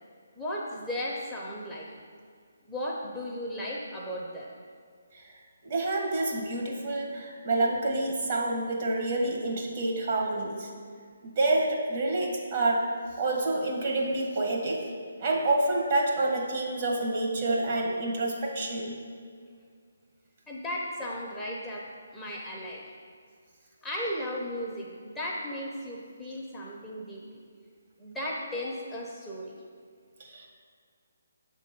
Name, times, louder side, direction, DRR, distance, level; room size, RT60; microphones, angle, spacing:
voice 1, 0.4-1.9 2.7-4.5 20.5-22.8 23.8-27.4 28.0-29.5, equal, 5° left, -4 dB, 0.7 m, -35 dB
voice 2, 5.6-10.7 11.3-12.9 13.2-14.8 15.2-19.0 30.2-30.5, right 2 dB, 45° right, -1 dB, 1.5 m, -28 dB
7.1 x 3.7 x 5.8 m, 2.1 s
figure-of-eight pair, 145°, 0 cm